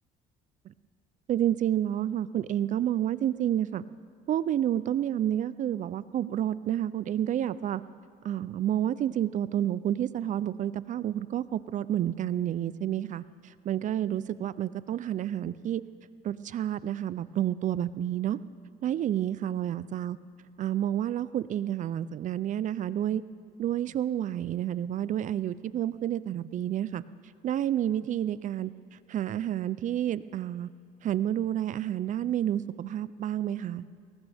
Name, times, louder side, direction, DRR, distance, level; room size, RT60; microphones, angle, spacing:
voice 1, 1.3-3.8 4.3-7.8 8.2-15.8 16.2-18.4 18.8-20.2 20.6-23.2 23.6-27.0 27.4-30.7 31.0-33.8, right 11 dB, 50° right, 17 dB, 0.4 m, -29 dB
20.0 x 18.0 x 3.5 m, 2.4 s
cardioid pair, 110°, 17 cm